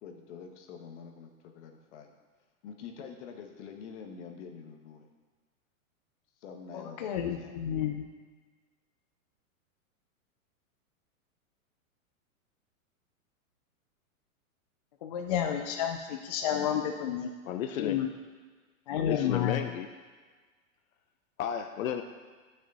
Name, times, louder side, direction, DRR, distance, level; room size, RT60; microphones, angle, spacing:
voice 1, 0.0-2.1 2.6-5.1 6.4-7.0 7.2-7.5, left 6 dB, 55° left, 4 dB, 1.4 m, -46 dB
voice 2, 6.7-8.1 15.0-17.3 17.8-18.1 18.9-19.6, left 9 dB, 30° left, 4 dB, 0.4 m, -31 dB
voice 3, 17.5-18.0 19.0-19.9 21.4-22.0, left 9 dB, 75° left, 7 dB, 0.8 m, -33 dB
11.5 x 6.2 x 4.1 m, 1.4 s
supercardioid pair, 155°, 42 cm